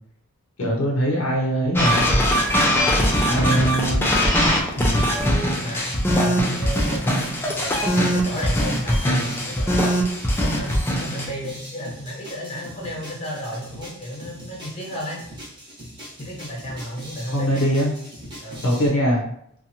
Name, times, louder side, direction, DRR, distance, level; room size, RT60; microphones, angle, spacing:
voice 1, 0.6-2.2 3.2-4.1 4.8-5.1 17.3-17.9 18.6-19.3, equal, 65° left, -2 dB, 0.6 m, -22 dB
sound 1, 1.8-11.3, equal, 10° left, 0.4 m, -21 dB
voice 2, 5.6-9.9 10.4-15.2 16.2-17.7 18.4-18.7, equal, 30° left, -2 dB, 0.8 m, -33 dB
sound 2, 6.4-18.9, equal, 20° right, 0.9 m, -41 dB
2.7 x 2.3 x 2.7 m, 0.71 s
head